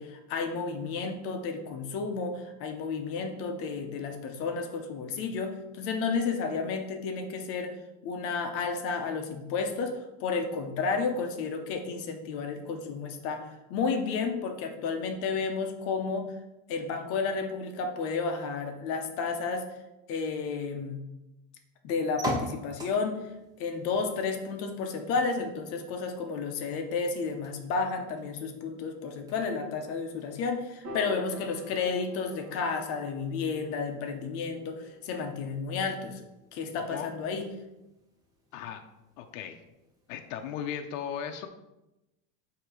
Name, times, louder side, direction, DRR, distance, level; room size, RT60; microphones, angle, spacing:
voice 1, 0.0-7.7 8.0-13.4 13.7-16.3 16.7-19.7 20.1-21.0 21.8-23.2 23.6-36.2 36.5-37.5, left 4 dB, 35° left, 5 dB, 0.7 m, -32 dB
sound 1, 22.2-40.9, right 1 dB, 10° right, 0.6 m, -45 dB
Piano, 30.8-37.2, left 1 dB, 35° right, 1.6 m, -48 dB
voice 2, 36.8-37.1 38.5-38.8 39.2-39.6 40.1-41.5, left 8 dB, 75° left, 5 dB, 0.7 m, -36 dB
7.7 x 2.9 x 4.9 m, 0.95 s
cardioid pair, 170°, 39 cm